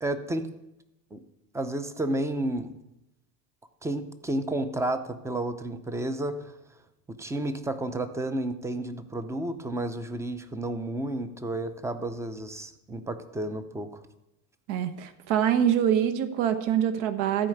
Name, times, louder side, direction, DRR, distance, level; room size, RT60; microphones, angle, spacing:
voice 1, 0.0-0.5 1.1-1.2 1.5-2.7 3.8-6.5 7.2-14.0, right 1 dB, 5° right, 10 dB, 0.6 m, -31 dB
voice 2, 14.7-17.5, right 9 dB, 60° right, 10 dB, 1.3 m, -25 dB
14.0 x 4.8 x 7.9 m, 0.92 s
supercardioid pair, 130°, 48 cm